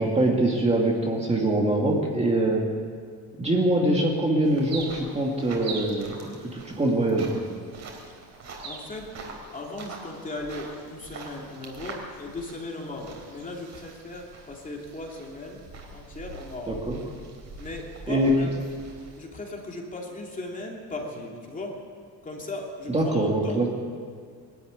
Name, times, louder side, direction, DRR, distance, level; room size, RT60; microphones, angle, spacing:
voice 1, 0.0-2.7 3.4-6.1 6.4-7.3 16.7-17.0 18.1-18.3 22.9-23.7, right 1 dB, 15° right, -1 dB, 2.1 m, -23 dB
sound 1, 4.4-19.2, right 3 dB, 45° right, 3.9 m, -43 dB
voice 2, 8.6-9.1 9.5-15.6 15.9-16.8 17.6-18.5 19.2-21.8 22.2-23.6, left 2 dB, 20° left, -1 dB, 2.8 m, -37 dB
21.5 x 13.0 x 9.5 m, 2.1 s
cardioid pair, 175°, 39 cm